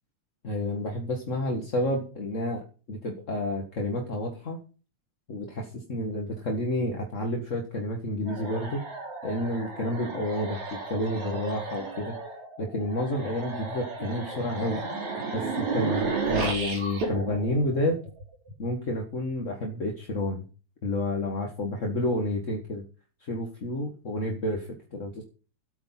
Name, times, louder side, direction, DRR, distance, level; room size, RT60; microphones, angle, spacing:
voice 1, 0.4-4.6 5.3-8.8 9.2-12.1 12.6-14.8 15.3-18.0 18.6-20.4 20.8-22.8 23.2-25.2, left 1 dB, 30° left, 1 dB, 1.6 m, -30 dB
sound 1, 8.3-18.5, right 4 dB, 70° right, 4.4 m, -33 dB
13.5 x 8.9 x 5.8 m, 0.36 s
omnidirectional pair, 3.4 m